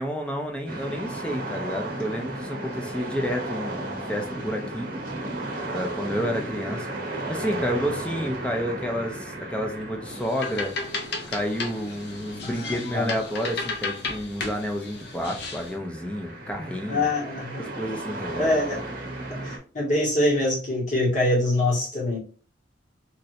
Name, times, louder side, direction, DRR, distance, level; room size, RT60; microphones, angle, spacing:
voice 1, 0.0-4.9 5.7-6.9 7.3-10.7 11.3-17.1 17.6-18.5, equal, 5° left, 2 dB, 0.5 m, -30 dB
sound 1, 0.7-19.6, right 1 dB, 50° right, 0.8 m, -35 dB
voice 2, 6.0-6.4 12.4-13.1 16.9-17.7 18.4-18.8 19.3-22.2, left 1 dB, 40° left, -3 dB, 1.4 m, -25 dB
sound 2, 10.1-15.7, left 3 dB, 60° left, 0.6 m, -34 dB
3.1 x 2.6 x 2.6 m, 0.39 s
head